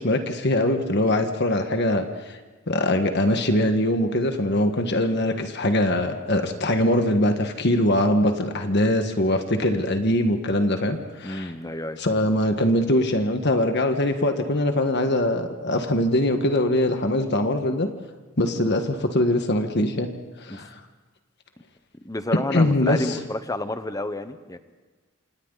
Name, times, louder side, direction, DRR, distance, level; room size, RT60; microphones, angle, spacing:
voice 1, 0.0-2.4 2.7-11.5 12.0-17.9 18.4-20.1 20.4-20.7 22.5-23.2, left 1 dB, 50° left, 6 dB, 1.6 m, -22 dB
voice 2, 11.2-12.0 20.5-20.7 22.0-24.6, left 1 dB, 15° left, 10 dB, 1.0 m, -30 dB
28.0 x 27.0 x 4.1 m, 1.3 s
head